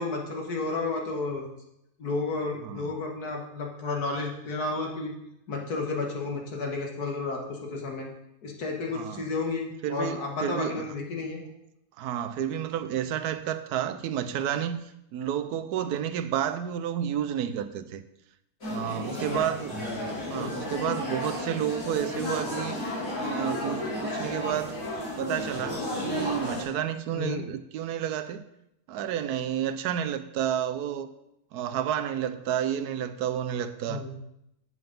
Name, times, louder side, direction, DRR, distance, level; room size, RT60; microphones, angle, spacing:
voice 1, 0.0-1.5 2.0-5.1 5.5-8.1 8.4-11.4 19.1-19.5 20.3-20.6 27.1-27.4 33.9-34.1, left 3 dB, 85° left, 2.2 m, -32 dB
voice 2, 2.6-3.0 8.9-9.3 9.8-10.9 12.0-14.8 15.1-18.0 18.7-19.8 20.3-22.8 23.2-24.8 25.2-28.4 28.9-31.1 31.5-34.0, right 10 dB, 85° right, 1.2 m, -30 dB
sound 1, 18.6-26.6, left 1 dB, 65° left, 3.7 m, -33 dB
8.0 x 7.8 x 5.2 m
omnidirectional pair, 1.6 m